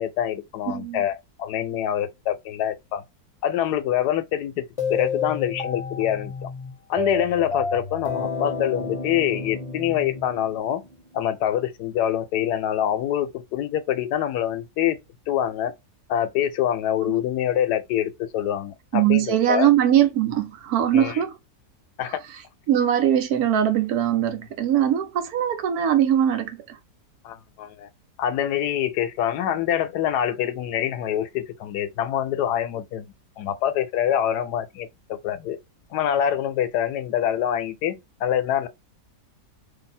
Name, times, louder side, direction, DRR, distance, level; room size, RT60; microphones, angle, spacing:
voice 1, 0.0-3.0 3.4-4.6 4.9-6.5 6.9-10.8 11.1-15.0 15.3-15.7 16.1-19.7 20.9-21.2 22.0-22.2 27.2-27.9 28.2-33.1 33.4-35.6 35.9-38.7, left 10 dB, 80° left, 1.1 m, -25 dB
voice 2, 0.7-1.0 17.1-17.2 18.9-21.3 22.7-26.8, right 10 dB, 70° right, 1.1 m, -21 dB
sound 1, 4.8-10.9, left 3 dB, 30° left, 0.7 m, -30 dB
2.7 x 2.7 x 4.0 m
omnidirectional pair, 1.8 m